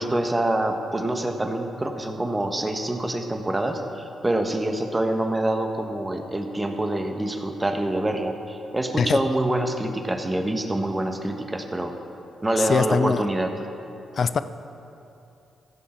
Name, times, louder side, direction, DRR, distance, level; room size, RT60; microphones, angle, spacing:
voice 1, 0.0-12.0 12.4-13.5, right 1 dB, 20° right, 4 dB, 1.3 m, -26 dB
voice 2, 12.6-13.2 14.2-14.4, left 5 dB, 55° left, 12 dB, 0.5 m, -22 dB
15.5 x 7.3 x 4.4 m, 2.8 s
hypercardioid pair, 45°, 0 cm